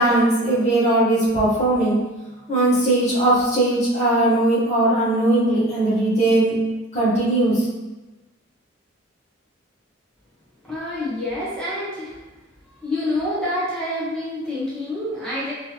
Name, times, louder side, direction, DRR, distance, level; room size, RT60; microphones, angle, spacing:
voice 1, 0.0-2.0 2.5-6.6 6.9-7.6, right 1 dB, 35° left, -10 dB, 1.3 m, -19 dB
voice 2, 10.6-12.2 12.8-15.5, left 1 dB, 5° left, -9 dB, 1.1 m, -27 dB
3.5 x 3.0 x 2.9 m, 1.1 s
head